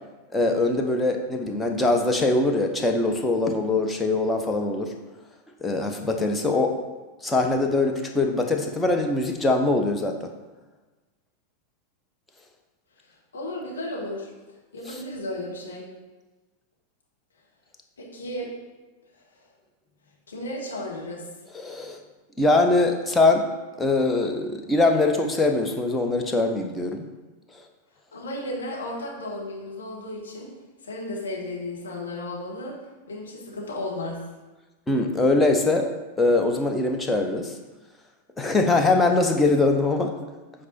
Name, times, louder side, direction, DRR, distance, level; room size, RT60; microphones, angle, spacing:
voice 1, 0.3-4.9 5.6-6.8 7.2-10.3 14.9-15.0 21.5-22.0 22.4-23.4 23.8-27.0 34.9-35.9 36.2-37.5 38.4-40.1, left 2 dB, 10° left, 3 dB, 1.0 m, -22 dB
voice 2, 13.3-14.3 14.7-15.9 18.0-18.5 20.3-21.2 28.1-30.5 30.8-32.7 33.1-34.2 38.6-38.9, left 1 dB, 70° left, -3 dB, 2.1 m, -34 dB
8.2 x 4.8 x 4.4 m, 1.2 s
figure-of-eight pair, 90°, 0 cm